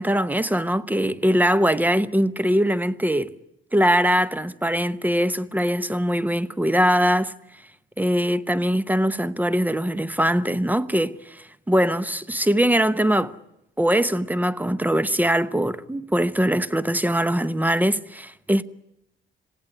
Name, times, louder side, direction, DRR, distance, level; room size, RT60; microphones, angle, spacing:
voice 1, 0.0-3.3 3.7-7.3 8.0-13.3 13.8-18.6, equal, 10° right, 0.9 m, -22 dB
26.5 x 16.5 x 9.8 m
cardioid pair, 90°, 20 cm